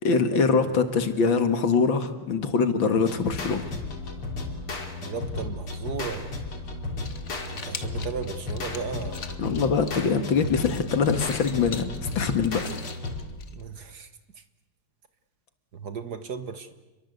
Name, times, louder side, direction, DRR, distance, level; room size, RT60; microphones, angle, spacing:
voice 1, 0.0-3.7 9.4-11.9 12.2-12.6, left 5 dB, 65° left, 8 dB, 2.5 m, -23 dB
sound 1, 3.0-13.5, left 3 dB, 85° left, 4.4 m, -34 dB
voice 2, 5.0-6.3 7.5-9.4 10.7-10.8 13.5-14.1 14.4-14.5 15.7-16.7, right 6 dB, 50° right, 10 dB, 1.7 m, -35 dB
sound 2, 6.9-13.9, left 5 dB, 40° left, 1.5 m, -44 dB
28.5 x 22.5 x 8.1 m, 1.1 s
omnidirectional pair, 2.3 m